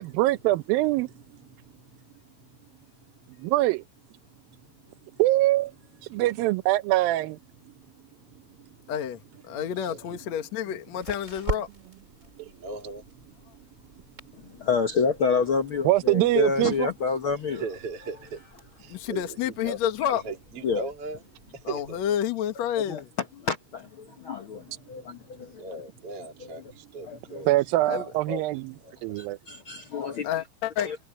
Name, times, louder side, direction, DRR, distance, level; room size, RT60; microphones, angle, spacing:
voice 1, 0.0-1.1 3.4-3.8 5.2-5.7 6.0-7.4 15.8-16.9 27.5-28.6 29.0-29.4, right 17 dB, 80° right, 2.4 m, -23 dB
voice 2, 1.3-3.4 4.3-5.2 6.1-6.2 7.7-8.8 9.5-10.4 12.1-14.7 17.5-19.8 20.2-22.0 24.1-27.5 28.3-29.5, right 2 dB, 40° right, 3.6 m, -41 dB
voice 3, 9.4-11.7 18.9-20.2 21.6-23.1 27.9-28.1 30.2-30.9, left 10 dB, 55° left, 2.3 m, -29 dB
sound 1, 9.7-22.1, right 2 dB, 20° right, 3.8 m, -43 dB
voice 4, 14.6-17.6 20.6-20.8 22.9-23.0 23.4-25.6 27.0-27.5 29.2-30.3 30.8-31.0, left 5 dB, 90° left, 1.1 m, -28 dB
omnidirectional pair, 4.3 m